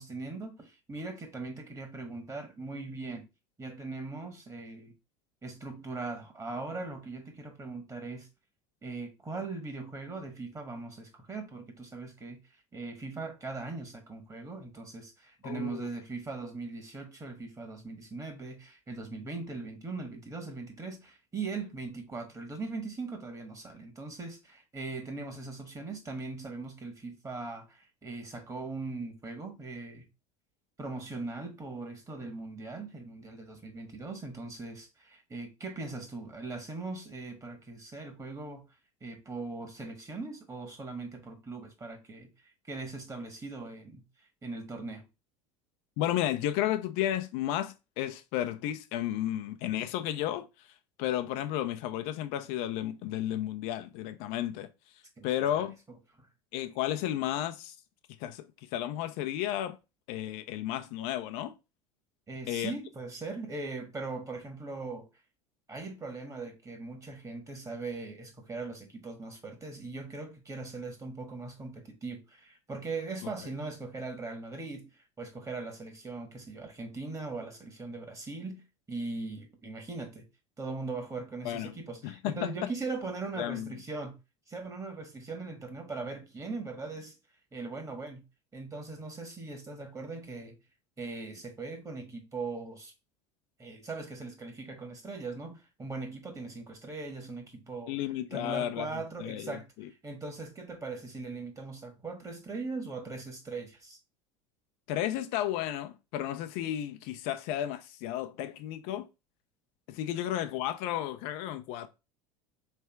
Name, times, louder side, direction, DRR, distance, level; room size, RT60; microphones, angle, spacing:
voice 1, 0.0-3.2 3.6-4.9 5.4-8.3 8.8-12.4 12.7-30.0 30.8-38.6 39.0-42.3 42.7-44.0 44.4-45.1 55.2-55.3 55.5-55.6 58.2-58.3 62.3-65.1 65.7-74.9 75.2-78.6 78.9-80.2 80.6-84.2 84.5-87.1 87.5-88.2 88.5-90.5 91.0-92.9 93.6-97.9 98.3-99.6 100.0-104.0, right 3 dB, 20° right, 1.5 m, -40 dB
voice 2, 15.4-15.9 46.0-50.7 51.0-54.7 55.2-55.8 56.5-57.8 58.2-59.8 60.1-61.5 62.5-62.8 73.2-73.5 81.4-81.7 82.0-82.7 83.4-83.8 97.9-99.9 104.9-109.1 109.9-111.9, left 12 dB, 65° left, 0.6 m, -33 dB
3.4 x 3.3 x 4.5 m
hypercardioid pair, 95°, 16 cm